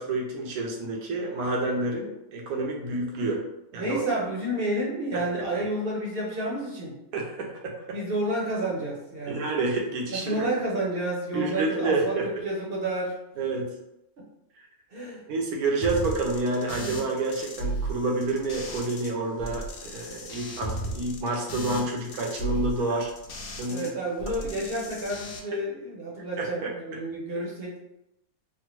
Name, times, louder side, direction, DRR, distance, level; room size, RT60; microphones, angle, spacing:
voice 1, 0.0-3.4 3.7-4.0 5.1-5.2 7.1-8.0 9.3-10.5 11.3-12.2 13.4-13.7 15.3-23.1 23.6-23.9 26.4-27.0, right 2 dB, 85° right, 0 dB, 1.2 m, -29 dB
voice 2, 3.7-7.0 7.9-9.5 10.1-13.1 14.9-15.3 23.7-27.7, right 1 dB, 50° right, -3 dB, 0.8 m, -30 dB
sound 1, 15.8-19.1 19.4-23.9 24.2-25.4, right 1 dB, 80° left, 1.0 m, -35 dB
3.4 x 2.1 x 2.9 m, 0.87 s
omnidirectional pair, 1.5 m